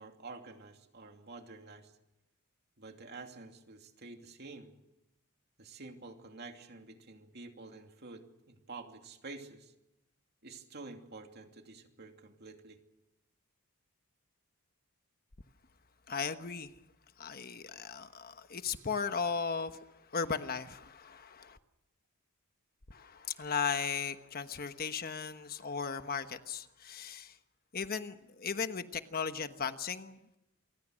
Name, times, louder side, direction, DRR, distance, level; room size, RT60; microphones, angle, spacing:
voice 1, 0.0-1.9 2.8-4.7 5.6-9.7 10.4-12.8, right 3 dB, 50° right, 4 dB, 2.8 m, -49 dB
voice 2, 16.1-16.7 17.2-19.8 20.1-21.6 22.9-27.4 27.7-30.4, left 6 dB, 45° left, 9 dB, 1.2 m, -36 dB
28.0 x 24.0 x 6.4 m, 0.89 s
head